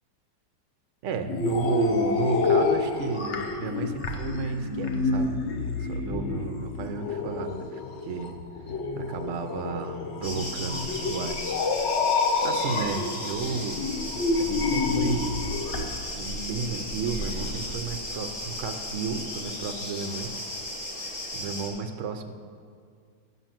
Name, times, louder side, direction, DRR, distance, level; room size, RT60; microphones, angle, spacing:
voice 1, 1.0-5.4 5.8-8.3 9.0-11.9 12.4-13.9 14.4-15.3 15.7-20.7 21.3-22.3, right 5 dB, 75° right, 7 dB, 0.6 m, -33 dB
sound 1, 1.2-15.8, left 3 dB, 55° left, 0.8 m, -28 dB
sound 2, 10.2-21.7, left 1 dB, 35° left, 1.4 m, -35 dB
8.1 x 5.7 x 7.4 m, 2.2 s
omnidirectional pair, 2.0 m